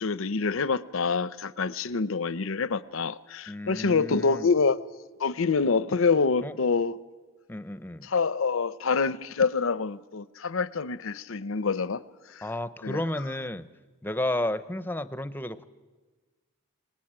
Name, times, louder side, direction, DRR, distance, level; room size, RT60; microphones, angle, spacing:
voice 1, 0.0-4.8 5.2-7.0 8.1-12.0 12.4-12.5 12.8-13.0, left 4 dB, 65° left, 0.7 m, -26 dB
voice 2, 3.5-4.5 6.4-6.6 7.5-8.1 12.4-13.7 14.0-15.7, left 1 dB, 10° left, 0.7 m, -32 dB
26.0 x 20.0 x 8.9 m
head